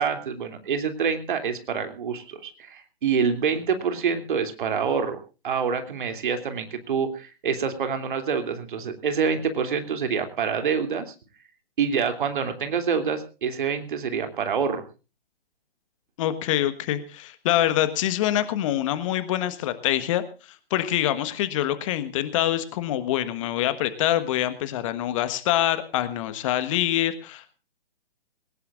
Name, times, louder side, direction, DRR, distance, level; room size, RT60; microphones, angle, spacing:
voice 1, 0.0-5.2 5.4-11.1 11.8-14.9, right 6 dB, 55° right, 7 dB, 3.1 m, -26 dB
voice 2, 16.2-20.2 20.7-27.6, left 13 dB, 30° left, 12 dB, 1.4 m, -25 dB
21.0 x 18.5 x 2.5 m, 0.32 s
figure-of-eight pair, 130°, 30 cm